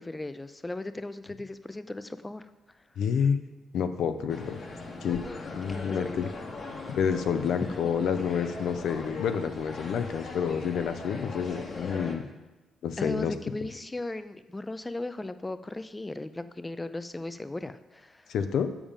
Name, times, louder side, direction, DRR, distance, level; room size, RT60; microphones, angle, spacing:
voice 1, 0.0-2.5 5.1-6.2 7.7-8.0 13.0-18.3, left 2 dB, 15° left, 12 dB, 0.5 m, -37 dB
voice 2, 3.0-3.4 3.7-4.6 5.0-5.2 5.5-6.3 6.9-12.2 12.8-13.3 18.3-18.7, left 7 dB, 70° left, 9 dB, 0.6 m, -28 dB
sound 1, 4.3-12.2, left 3 dB, 45° left, 1.3 m, -40 dB
7.1 x 5.0 x 7.2 m, 1.1 s
cardioid pair, 90°, 0 cm